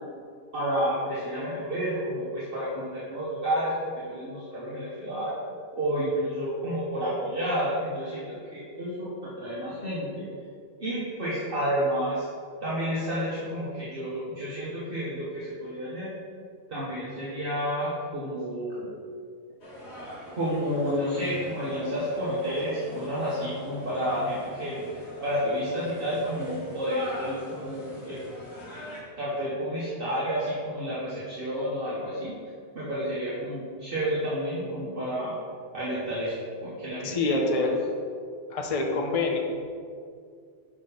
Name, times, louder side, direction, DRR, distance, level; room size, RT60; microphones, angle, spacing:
voice 1, 0.5-3.7 4.1-5.3 5.7-8.2 8.5-10.3 10.8-12.3 12.6-16.1 16.7-18.9 20.4-28.2 29.2-32.3 32.7-35.4 35.7-36.3 36.6-37.6, equal, 50° right, -9 dB, 1.4 m, -30 dB
sound 1, 19.6-29.0, left 1 dB, 70° left, 1.7 m, -42 dB
voice 2, 37.0-37.7 38.5-39.4, left 3 dB, 35° left, 2 dB, 0.7 m, -26 dB
6.5 x 5.6 x 4.1 m, 2.2 s
omnidirectional pair, 1.2 m